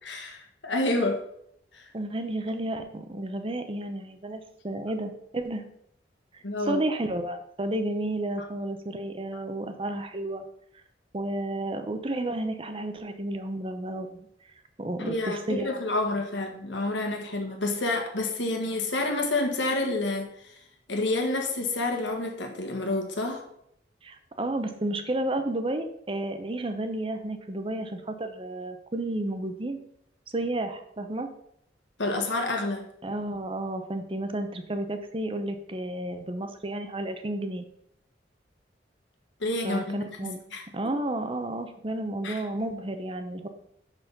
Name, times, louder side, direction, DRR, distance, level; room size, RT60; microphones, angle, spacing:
voice 1, 0.0-1.2 1.7-1.8 6.4-6.8 15.0-20.6 20.9-23.4 32.0-32.8 39.4-40.6 42.2-42.4, left 2 dB, 90° left, 3 dB, 1.5 m, -29 dB
voice 2, 1.9-5.6 6.3-10.4 11.1-14.3 14.8-15.7 24.0-29.8 30.3-31.3 33.0-37.6 39.6-40.4 40.7-43.5, right 1 dB, 30° right, 7 dB, 0.7 m, -32 dB
6.1 x 5.7 x 5.3 m, 0.72 s
head